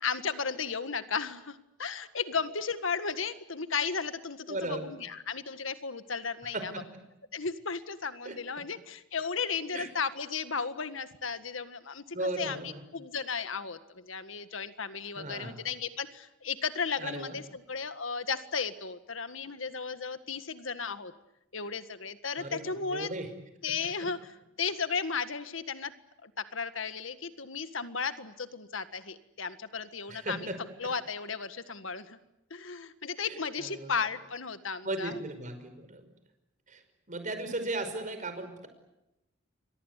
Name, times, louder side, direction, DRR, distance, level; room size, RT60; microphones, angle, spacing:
voice 1, 0.0-6.7 7.3-21.1 21.5-23.1 23.6-25.9 26.2-30.5 30.8-32.2 32.5-35.2, left 5 dB, 75° left, 11 dB, 1.7 m, -35 dB
voice 2, 4.5-4.9 6.5-7.0 8.3-8.4 9.7-9.9 12.1-12.8 15.2-15.6 17.0-17.4 22.4-23.3 30.1-30.6 33.2-33.9 34.8-36.1 36.7-36.8 37.1-38.7, right 2 dB, 40° right, 8 dB, 5.4 m, -36 dB
29.0 x 24.0 x 8.3 m, 0.90 s
head